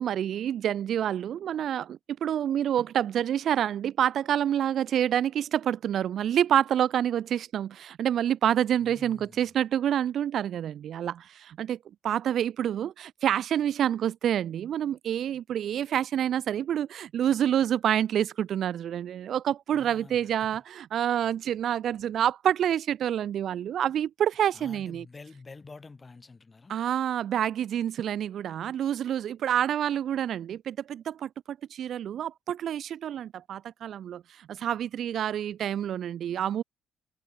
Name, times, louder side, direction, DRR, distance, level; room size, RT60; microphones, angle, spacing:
voice 1, 0.0-11.8 12.0-25.0 26.7-36.6, right 10 dB, 60° right, 0.3 m, -28 dB
voice 2, 8.8-9.5 19.7-20.6 24.5-26.8, left 4 dB, 20° left, 2.9 m, -48 dB
cardioid pair, 130°, 0 cm